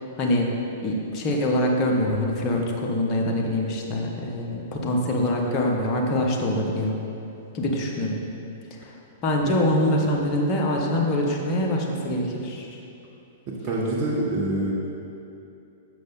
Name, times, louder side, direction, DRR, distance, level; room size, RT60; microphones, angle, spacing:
voice 1, 0.2-0.6 0.8-7.0 7.5-8.2 8.8-8.9 9.2-12.8, left 1 dB, 35° left, -1 dB, 1.0 m, -24 dB
voice 2, 13.5-14.7, right 2 dB, 40° right, -4 dB, 1.0 m, -26 dB
6.7 x 5.2 x 4.0 m, 2.8 s
figure-of-eight pair, 105°, 0 cm